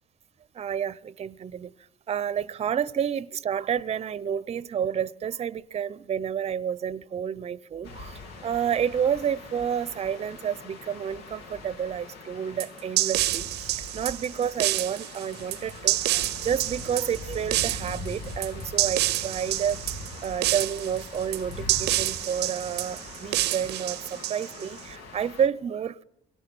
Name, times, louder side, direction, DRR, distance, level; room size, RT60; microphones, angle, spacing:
voice 1, 0.5-1.7 2.1-19.8 20.2-26.0, right 8 dB, 40° right, 0.8 m, -30 dB
sound 1, 7.8-25.5, left 2 dB, 85° left, 3.5 m, -42 dB
sound 2, 12.6-24.8, right 17 dB, 80° right, 0.8 m, -28 dB
24.5 x 18.0 x 9.1 m
cardioid pair, 110°, 17 cm